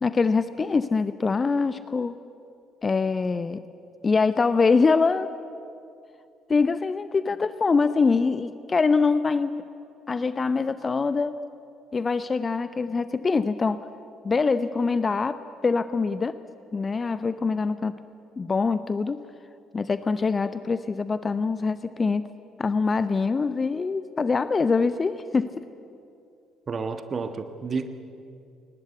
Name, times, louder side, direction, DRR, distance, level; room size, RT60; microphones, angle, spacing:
voice 1, 0.0-2.1 2.8-3.6 4.0-5.3 6.5-9.7 10.1-11.4 11.9-13.9 14.2-16.4 16.7-17.9 18.4-19.2 19.7-22.2 22.6-25.6, left 4 dB, 30° left, 13 dB, 0.7 m, -24 dB
voice 2, 26.7-27.9, right 4 dB, 40° right, 9 dB, 1.3 m, -30 dB
21.5 x 20.0 x 8.3 m, 2.5 s
figure-of-eight pair, 50°, 0 cm